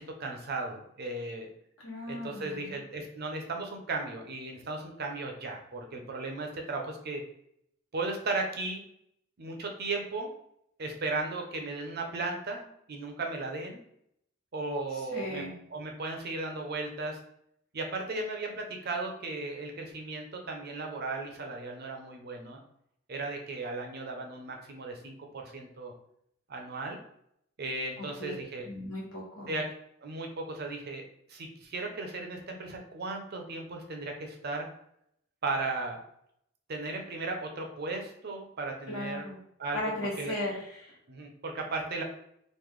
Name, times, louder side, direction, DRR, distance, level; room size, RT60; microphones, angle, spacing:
voice 1, 0.0-1.5 2.1-7.2 7.9-8.8 9.4-10.3 10.8-13.8 14.5-15.4 15.7-17.2 17.7-22.6 23.1-25.9 26.5-27.0 27.6-28.7 29.5-29.7 30.0-34.7 35.4-36.0 36.7-39.2 39.6-40.3 41.1-42.0, right 3 dB, 45° right, 3 dB, 0.5 m, -36 dB
voice 2, 1.8-2.8 15.1-15.6 28.0-29.6 38.9-39.4 39.7-40.9, left 1 dB, 70° left, -4 dB, 1.2 m, -37 dB
3.1 x 2.1 x 3.7 m, 0.71 s
head